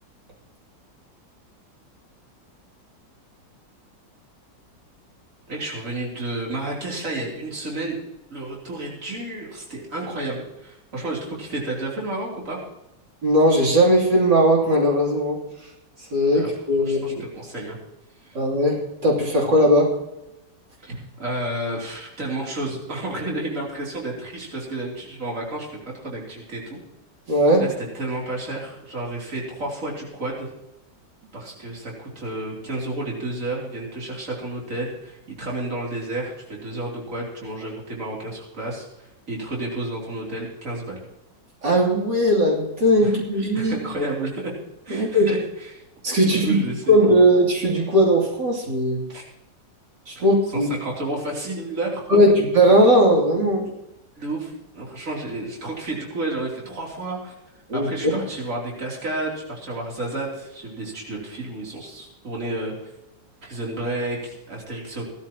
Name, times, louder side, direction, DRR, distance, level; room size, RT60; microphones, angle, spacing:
voice 1, 5.5-8.0 8.3-12.6 16.3-16.5 16.8-17.8 18.2-18.4 20.8-25.7 26.0-26.8 27.6-30.5 31.3-41.0 43.0-43.2 43.5-44.5 44.9-45.8 46.2-47.0 49.1-49.2 50.2-52.1 54.2-57.3 57.7-62.9 63.4-65.0, right 2 dB, 45° right, -3 dB, 3.6 m, -31 dB
voice 2, 13.2-15.4 16.1-17.2 18.4-19.9 20.9-21.0 27.3-27.6 41.6-43.8 44.9-45.3 46.0-46.6 46.9-49.0 50.1-50.7 52.1-53.6 57.7-58.2, equal, 70° right, -3 dB, 3.7 m, -18 dB
18.0 x 13.0 x 3.0 m, 0.90 s
omnidirectional pair, 2.0 m